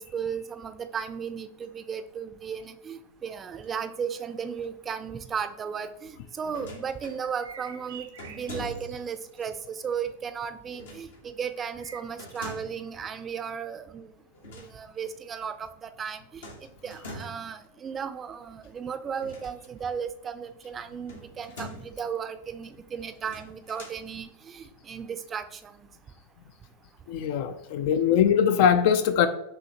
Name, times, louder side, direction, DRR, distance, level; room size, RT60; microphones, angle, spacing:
voice 1, 0.0-11.1 11.3-14.1 14.5-16.5 16.8-25.9, right 7 dB, 25° right, 10 dB, 0.4 m, -35 dB
sound 1, 6.5-7.2 8.2-9.1 10.7-11.2 12.2-12.9 14.3-14.7 15.0-15.1 16.4-17.5 19.1-19.9 21.1-22.0 23.1-24.0, left 1 dB, 75° left, 1.3 m, -43 dB
sound 2, 7.2-9.6 9.9-10.0 11.6-12.0, right 6 dB, 75° right, 0.6 m, -47 dB
voice 2, 27.1-29.3, left 8 dB, 60° left, 10 dB, 0.3 m, -22 dB
5.5 x 2.8 x 2.8 m, 0.79 s
hypercardioid pair, 100°, 0 cm